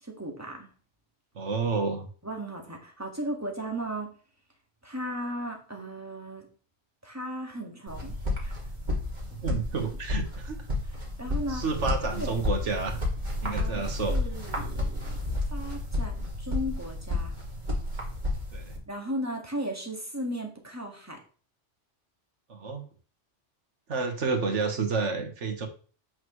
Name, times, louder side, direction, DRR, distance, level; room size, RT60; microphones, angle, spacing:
voice 1, 0.0-0.7 2.2-4.2 4.8-6.5 7.0-8.1 8.4-8.5 11.2-11.6 12.1-12.3 13.4-15.2 15.5-17.4 18.9-21.2, right 1 dB, 15° right, 1 dB, 1.8 m, -36 dB
voice 2, 1.4-2.1 9.3-10.7 11.5-13.0 13.4-14.2 18.5-18.7 22.5-22.8 23.9-25.7, right 4 dB, 75° right, 4 dB, 1.7 m, -30 dB
sound 1, 7.9-18.8, left 2 dB, 40° right, 2.4 m, -31 dB
8.4 x 6.3 x 3.2 m, 0.40 s
omnidirectional pair, 1.2 m